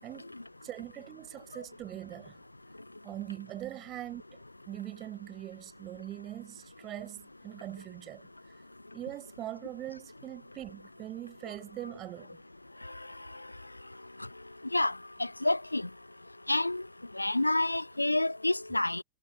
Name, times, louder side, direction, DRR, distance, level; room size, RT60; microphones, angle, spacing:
voice 1, 0.6-2.4 3.0-4.2 4.7-8.3 8.9-12.4, right 14 dB, 35° right, 7.0 m, -42 dB
voice 2, 15.2-15.9 16.5-16.8 17.2-19.0, left 2 dB, 85° left, 0.7 m, -28 dB
figure-of-eight pair, 90°, 0 cm